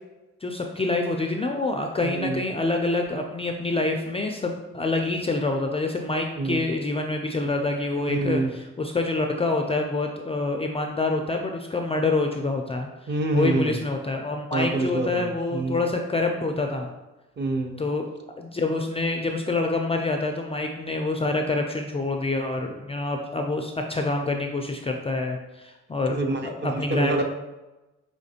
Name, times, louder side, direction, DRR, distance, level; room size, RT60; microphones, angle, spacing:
voice 1, 0.4-16.9 17.8-18.1 18.4-26.2 26.4-27.2, left 2 dB, 20° left, 3 dB, 0.3 m, -27 dB
voice 2, 2.0-2.4 6.4-6.6 8.0-8.5 13.1-13.8 14.5-15.9 17.4-17.8 26.1-27.2, right 2 dB, 35° right, 4 dB, 0.7 m, -26 dB
5.0 x 3.0 x 2.7 m, 1.1 s
cardioid pair, 90°, 30 cm